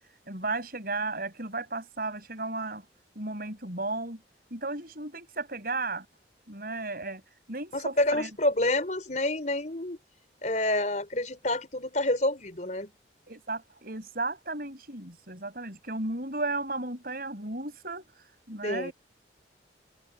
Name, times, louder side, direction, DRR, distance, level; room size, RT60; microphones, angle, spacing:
voice 1, 0.3-2.8 3.2-4.2 4.5-6.1 6.5-7.2 7.5-8.3 13.3-18.0 18.5-18.9, right 2 dB, 50° right, 5.9 m, -34 dB
voice 2, 7.7-10.0 10.4-12.9 18.6-18.9, left 1 dB, 40° left, 4.8 m, -28 dB
open air
head